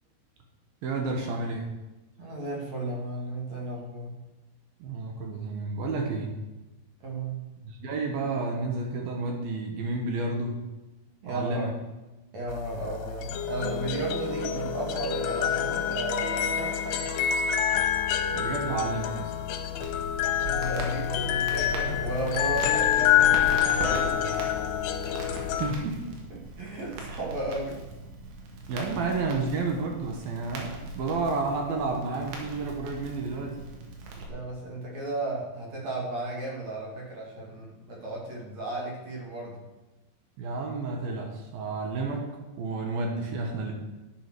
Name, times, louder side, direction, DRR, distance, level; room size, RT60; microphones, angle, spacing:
voice 1, 0.8-1.7 4.8-6.4 7.6-10.6 11.3-11.7 18.2-19.3 25.2-26.0 27.1-27.2 28.7-33.7 40.4-42.3 42.6-43.7, right 3 dB, 65° right, 2 dB, 2.7 m, -31 dB
voice 2, 2.2-4.2 7.0-7.4 11.2-11.7 12.3-17.1 17.6-17.7 20.4-24.5 26.3-27.8 34.3-39.6, right 2 dB, 45° right, -2 dB, 2.9 m, -35 dB
sound 1, 12.5-25.7, left 9 dB, 75° left, 2.7 m, -27 dB
Crackle, 19.8-34.3, right 1 dB, 85° right, 4.2 m, -39 dB
11.5 x 8.2 x 6.1 m, 1.1 s
omnidirectional pair, 5.2 m